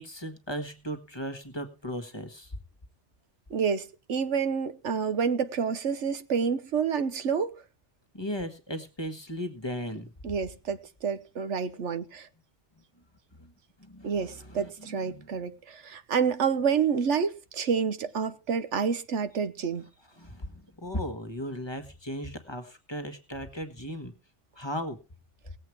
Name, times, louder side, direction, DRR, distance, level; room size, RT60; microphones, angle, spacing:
voice 1, 0.0-2.5 8.1-10.1 13.4-13.5 13.8-15.3 20.2-24.1 24.6-25.0, equal, 25° left, 1.5 m, -37 dB
voice 2, 3.5-7.6 10.2-12.3 14.0-19.8, right 6 dB, 90° right, 1.4 m, -28 dB
19.0 x 7.9 x 4.7 m
omnidirectional pair, 1.2 m